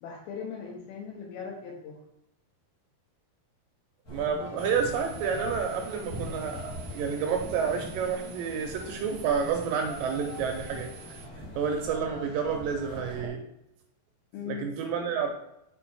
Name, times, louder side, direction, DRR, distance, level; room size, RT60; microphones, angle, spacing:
voice 1, 0.0-2.0 14.3-14.7, left 7 dB, 80° left, -1 dB, 2.7 m, -39 dB
sound 1, 4.1-13.3, equal, 60° left, 1.0 m, -41 dB
voice 2, 4.1-10.9 11.6-13.5 14.5-15.3, right 6 dB, 80° right, 3 dB, 2.1 m, -30 dB
sound 2, 4.6-11.3, right 10 dB, 55° right, 1.5 m, -50 dB
6.0 x 4.2 x 4.5 m, 0.83 s
omnidirectional pair, 4.5 m